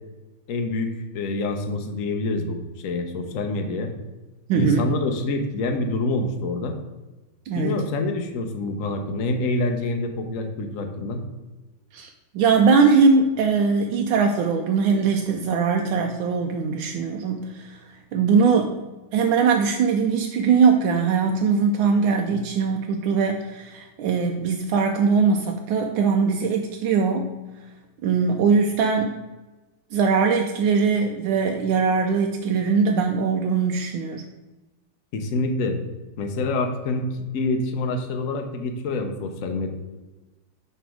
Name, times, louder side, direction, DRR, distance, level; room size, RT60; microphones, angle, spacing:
voice 1, 0.5-3.9 4.5-6.8 7.5-11.2 35.1-35.8 36.2-37.0 37.3-39.7, left 2 dB, 55° left, 5 dB, 0.9 m, -26 dB
voice 2, 4.5-4.9 7.5-7.8 11.9-12.1 12.3-17.8 18.1-18.7 19.1-27.4 28.0-29.1 29.9-34.2, right 5 dB, 80° right, 3 dB, 1.4 m, -21 dB
6.8 x 3.4 x 6.1 m, 1.1 s
omnidirectional pair, 2.2 m